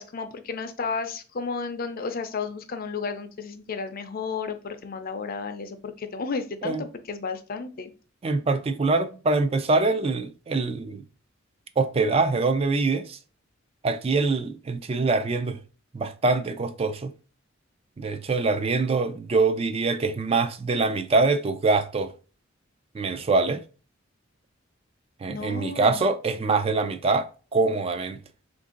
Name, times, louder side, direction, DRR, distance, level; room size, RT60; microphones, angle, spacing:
voice 1, 0.0-7.9 25.3-26.1, left 4 dB, 45° left, 0.5 m, -33 dB
voice 2, 8.2-11.0 11.8-13.2 13.8-15.6 15.9-17.1 18.0-22.1 22.9-23.6 25.2-28.2, right 3 dB, 30° right, 0.3 m, -24 dB
3.6 x 2.6 x 3.7 m
head